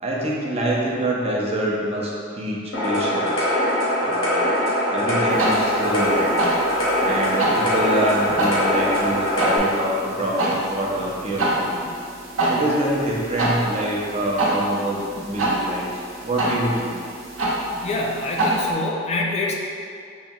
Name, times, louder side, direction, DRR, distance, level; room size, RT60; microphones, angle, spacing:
voice 1, 0.0-3.5 4.0-4.4 4.9-6.3 7.0-11.8 12.5-17.0, right 1 dB, 30° right, -4 dB, 0.6 m, -25 dB
sound 1, 2.7-9.6, equal, 70° left, 0.9 m, -22 dB
sound 2, 5.3-18.7, right 1 dB, 85° right, 0.9 m, -27 dB
voice 2, 17.8-19.5, left 2 dB, 35° left, -1 dB, 0.3 m, -25 dB
5.5 x 2.3 x 2.7 m, 2.3 s
head